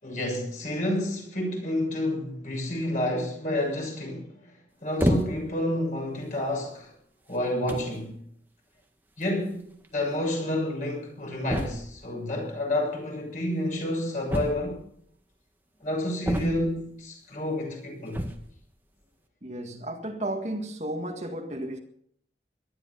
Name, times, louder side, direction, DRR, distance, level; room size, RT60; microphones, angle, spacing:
voice 1, 0.0-4.3 4.8-6.9 7.3-8.2 9.2-14.8 15.8-18.2, left 1 dB, 45° left, 6.8 m, -29 dB
sound 1, 5.0-5.6 6.4-6.5 7.3-7.4 7.7-8.0 9.2-9.3 9.5-9.6 9.8-9.9 11.5-12.0 14.3-15.0 16.2-16.9 18.1-18.5, equal, 10° right, 1.6 m, -29 dB
voice 2, 19.4-21.8, right 1 dB, 40° right, 1.9 m, -33 dB
18.5 x 12.5 x 5.7 m
head